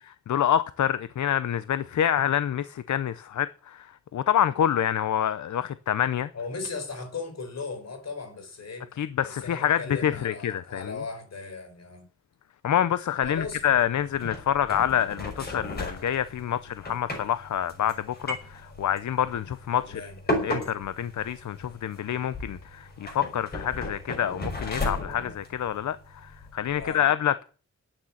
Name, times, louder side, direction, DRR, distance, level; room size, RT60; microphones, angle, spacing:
voice 1, 0.3-6.3 9.0-11.0 12.6-20.0 20.4-27.4, left 10 dB, 80° left, 0.7 m, -27 dB
voice 2, 6.3-12.1 13.2-13.7 19.8-20.2 26.7-27.0, left 4 dB, 60° left, 4.7 m, -37 dB
sound 1, 13.2-26.9, left 1 dB, 35° left, 6.0 m, -36 dB
12.0 x 9.0 x 7.2 m
wide cardioid pair, 155°, 29 cm